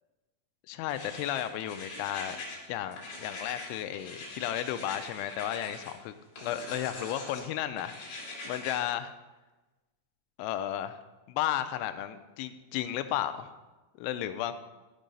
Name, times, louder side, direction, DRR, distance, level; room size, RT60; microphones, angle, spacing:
voice 1, 0.7-2.4 2.7-6.1 6.4-9.1 10.4-11.0 11.3-13.5 14.0-14.5, left 11 dB, 85° left, 10 dB, 2.9 m, -33 dB
sound 1, 0.9-2.6 2.9-5.9 6.4-7.5 7.8-8.8, left 2 dB, 50° left, 3.2 m, -43 dB
12.5 x 5.4 x 5.2 m, 1.1 s
omnidirectional pair, 5.5 m